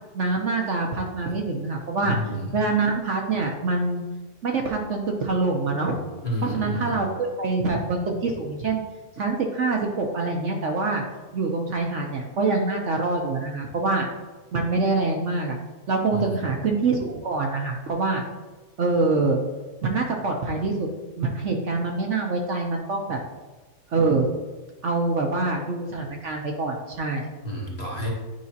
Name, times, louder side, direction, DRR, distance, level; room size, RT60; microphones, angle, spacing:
voice 1, 0.1-2.2 2.5-4.0 4.4-6.0 6.4-8.8 9.2-11.0 11.3-14.1 14.5-15.6 15.9-18.2 18.8-19.4 19.8-20.9 21.2-23.2 23.9-24.3 24.8-27.3, right 3 dB, 60° right, 1 dB, 1.0 m, -25 dB
voice 2, 2.0-2.6 6.2-7.0 16.1-16.4 27.4-28.1, equal, 30° left, -3 dB, 1.1 m, -30 dB
9.3 x 4.9 x 2.8 m, 1.2 s
omnidirectional pair, 1.6 m